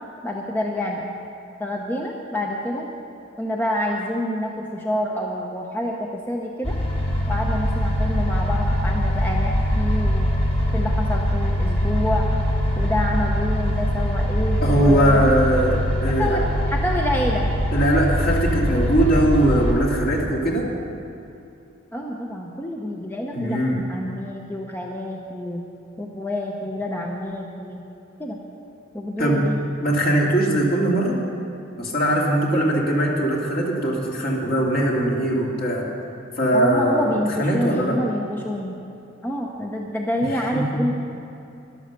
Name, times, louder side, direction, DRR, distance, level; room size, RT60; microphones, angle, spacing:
voice 1, 0.2-1.0 1.6-2.9 3.4-6.7 7.3-10.3 10.7-12.3 12.7-15.6 16.2-17.5 21.9-25.6 26.0-27.8 28.2-28.4 28.9-29.6 36.5-38.8 39.2-40.9, left 1 dB, 10° left, -1 dB, 0.9 m, -27 dB
sound 1, 6.6-19.7, equal, 30° left, 2.2 m, -22 dB
voice 2, 14.6-16.4 17.7-20.7 23.3-23.8 29.2-29.5 29.8-31.2 31.8-35.9 36.4-38.0 40.5-40.6, right 1 dB, 50° left, -2 dB, 2.4 m, -20 dB
13.0 x 11.5 x 6.7 m, 2.7 s
head